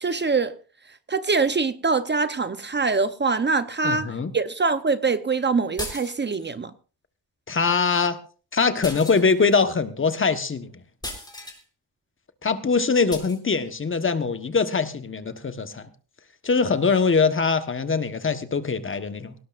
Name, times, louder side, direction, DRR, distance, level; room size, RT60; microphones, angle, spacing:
voice 1, 0.0-0.5 1.1-6.7, right 4 dB, 30° right, 0.8 m, -24 dB
voice 2, 3.8-4.3 7.5-8.2 8.5-10.7 12.4-15.9 16.4-19.3, left 4 dB, 30° left, 1.3 m, -22 dB
sound 1, 5.8-6.5 8.8-9.6 11.0-11.6 13.1-13.4, left 1 dB, 10° left, 4.2 m, -36 dB
19.5 x 18.0 x 2.6 m
cardioid pair, 115°, 38 cm